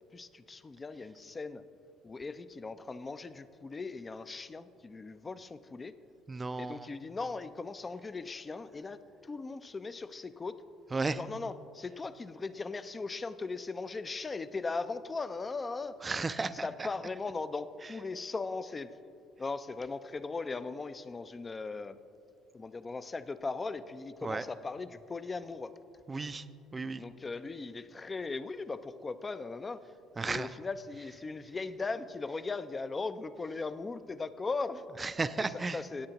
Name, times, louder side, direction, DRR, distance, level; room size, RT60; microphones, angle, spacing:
voice 1, 0.1-1.6 2.0-5.9 6.6-10.6 11.1-16.0 16.6-18.9 19.4-22.0 22.5-25.7 27.0-29.8 30.2-34.8 35.7-36.1, left 3 dB, 25° left, 13 dB, 0.5 m, -38 dB
voice 2, 6.3-6.9 10.9-11.2 16.0-16.9 24.2-24.4 26.1-26.5 26.7-27.0 30.2-30.5 35.0-35.8, right 3 dB, 25° right, 13 dB, 0.4 m, -34 dB
17.0 x 8.8 x 2.9 m, 2.4 s
supercardioid pair, 75°, 0 cm